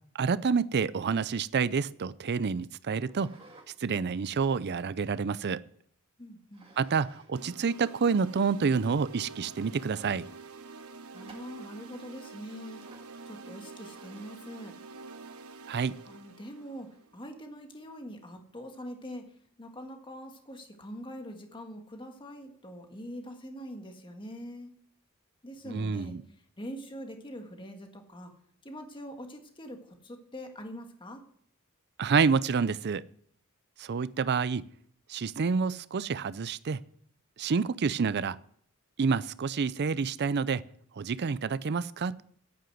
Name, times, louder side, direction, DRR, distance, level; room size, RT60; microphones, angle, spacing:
voice 1, 0.2-3.3 3.8-5.6 6.8-10.3 15.7-16.0 25.7-26.2 32.0-33.0 33.8-34.7 35.1-36.8 37.4-38.4 39.0-40.6 41.0-42.2, right 5 dB, 50° right, 0.5 m, -28 dB
sound 1, 3.1-3.7 4.1-5.5 6.5-7.3 7.6-7.7 8.4-8.5 8.9-9.0 9.3-10.0 11.1-11.7 12.7-13.2 13.9-14.5, right 2 dB, 25° right, 2.0 m, -56 dB
voice 2, 6.2-6.6 11.1-12.8 13.3-14.8 16.0-19.3 19.6-24.7 25.4-26.1 26.6-28.3 28.6-31.2, equal, 25° left, 1.6 m, -43 dB
sound 2, 7.3-17.4, right 4 dB, 85° right, 1.1 m, -48 dB
9.6 x 9.0 x 7.8 m
head